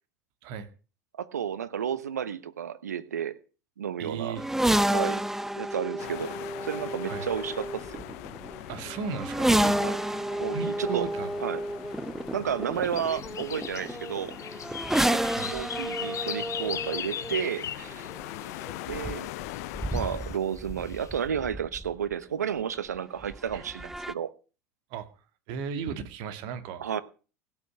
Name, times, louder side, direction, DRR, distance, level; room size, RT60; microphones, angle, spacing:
voice 1, 1.2-3.4 3.8-4.4 4.9-5.2 5.6-6.4 6.6-8.0 9.8-10.0 10.4-11.1 11.4-11.6 12.3-14.4 15.1-15.2 15.5-18.1 18.9-19.3 19.9-24.3 26.8-27.0, right 8 dB, 90° right, 1.0 m, -32 dB
voice 2, 4.0-4.5 7.1-7.3 8.7-10.2 10.5-11.3 15.3-15.6 23.5-23.6 24.9-25.1 25.5-26.9, right 6 dB, 60° right, 1.9 m, -36 dB
sound 1, 4.4-22.1 23.2-24.1, right 1 dB, 5° right, 0.7 m, -31 dB
sound 2, 6.0-20.4, left 20 dB, 65° left, 0.6 m, -42 dB
sound 3, 12.7-18.7 19.5-20.3 20.8-21.1, left 9 dB, 35° left, 1.3 m, -38 dB
16.5 x 6.0 x 7.9 m
hypercardioid pair, 85°, 9 cm